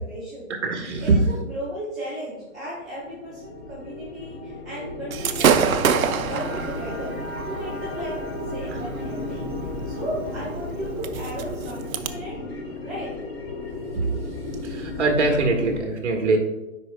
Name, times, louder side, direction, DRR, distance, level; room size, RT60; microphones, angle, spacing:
voice 1, 0.0-0.5 1.0-7.2 7.4-13.2, equal, ahead, -19 dB, 1.0 m, -36 dB
voice 2, 0.6-1.2 13.9-14.1 14.6-16.4, right 3 dB, 60° right, 3 dB, 1.4 m, -22 dB
sound 1, 2.4-15.8, left 2 dB, 45° left, 1.1 m, -34 dB
Gunshot gunfire / Fireworks, 5.1-12.1, right 7 dB, 85° right, 0.7 m, -27 dB
10.5 x 4.8 x 2.2 m, 0.99 s
hypercardioid pair, 180°, 41 cm